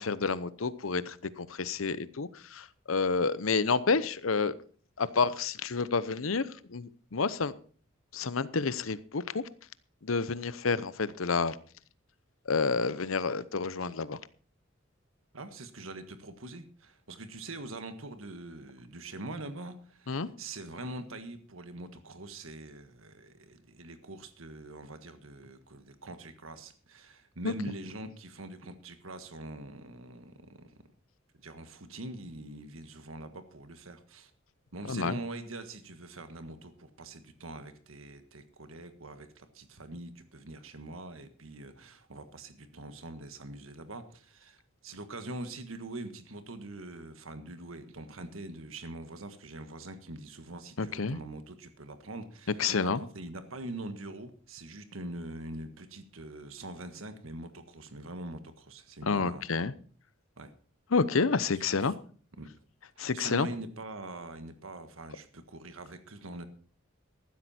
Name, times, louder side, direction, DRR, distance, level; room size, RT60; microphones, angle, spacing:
voice 1, 0.0-4.5 5.0-7.5 8.1-9.4 10.0-11.6 12.5-14.2 20.1-20.3 27.4-27.5 34.9-35.1 50.8-51.2 52.6-53.0 59.0-59.7 60.9-61.9 63.0-63.5, left 4 dB, 85° left, 17 dB, 0.9 m, -29 dB
voice 2, 15.3-30.7 31.4-34.3 34.7-59.6 60.4-60.5 61.8-61.9 62.4-62.5 62.9-66.4, right 2 dB, 90° right, 9 dB, 1.6 m, -43 dB
15.0 x 12.5 x 4.4 m, 0.42 s
head